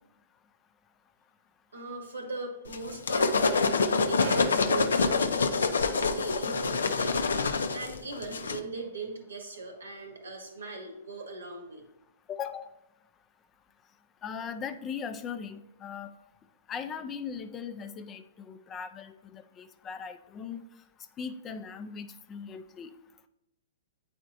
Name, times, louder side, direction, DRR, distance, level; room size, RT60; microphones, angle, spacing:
voice 1, 1.7-11.8, right 3 dB, 90° right, 2 dB, 1.7 m, -39 dB
sound 1, 2.7-8.6, left 4 dB, 85° left, 0.5 m, -26 dB
voice 2, 12.3-12.7 14.2-16.1 16.7-20.7 21.2-22.9, left 6 dB, 25° left, 9 dB, 0.4 m, -39 dB
8.7 x 4.3 x 2.6 m, 0.87 s
hypercardioid pair, 125°, 0 cm